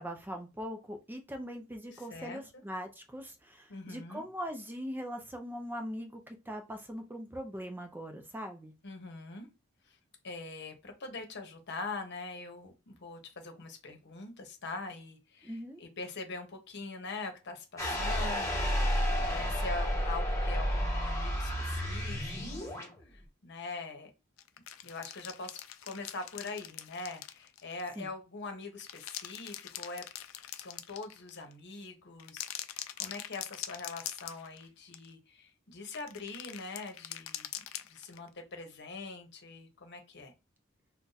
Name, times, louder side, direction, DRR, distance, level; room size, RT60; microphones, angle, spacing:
voice 1, 0.0-8.7 15.4-15.8 28.0-28.1, equal, 10° right, 5 dB, 0.4 m, -41 dB
voice 2, 1.9-2.4 3.7-4.2 8.8-9.5 9.9-10.0 10.2-24.1 24.8-30.0 30.5-40.3, left 3 dB, 55° left, 5 dB, 0.9 m, -43 dB
sound 1, 17.8-22.9, equal, 15° left, 1.2 m, -31 dB
sound 2, 24.4-27.9 28.6-31.5 32.2-34.7 34.9-35.1 35.9-38.3, left 12 dB, 80° left, 0.4 m, -43 dB
2.6 x 2.2 x 3.9 m, 0.30 s
head